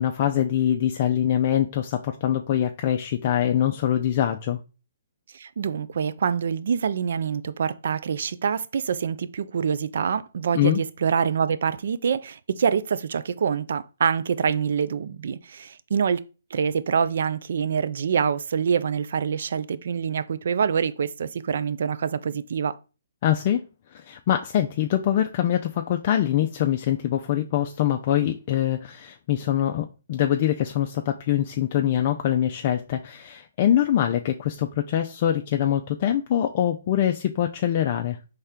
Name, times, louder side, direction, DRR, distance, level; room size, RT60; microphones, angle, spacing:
voice 1, 0.0-4.6 10.5-10.8 23.2-23.7 23.9-38.2, left 11 dB, 40° left, 0.4 m, -24 dB
voice 2, 5.3-22.8, right 7 dB, 65° right, 0.4 m, -25 dB
4.3 x 3.3 x 3.6 m
hypercardioid pair, 150°, 0 cm